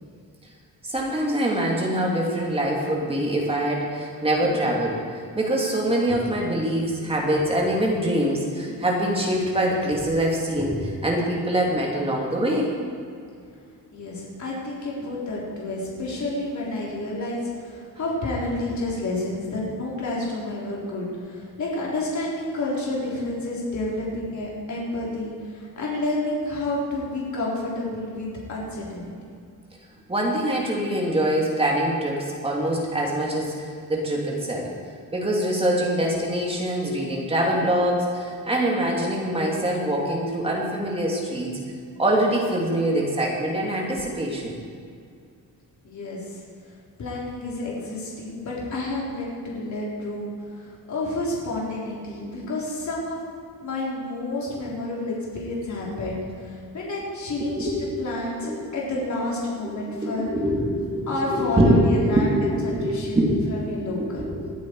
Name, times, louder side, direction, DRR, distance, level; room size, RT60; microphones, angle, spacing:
voice 1, 0.8-12.7 30.1-34.7 35.1-41.6 42.0-44.6 57.6-57.8 58.4-58.6 59.6-59.7 60.0-61.9 62.1-63.3 64.0-64.5, right 1 dB, 15° right, -2 dB, 2.6 m, -24 dB
voice 2, 13.9-29.1 45.8-46.4 47.0-53.2 53.6-60.3 61.1-64.3, left 2 dB, 50° left, -5 dB, 4.2 m, -30 dB
21.0 x 13.5 x 4.8 m, 2.4 s
wide cardioid pair, 170°, 37 cm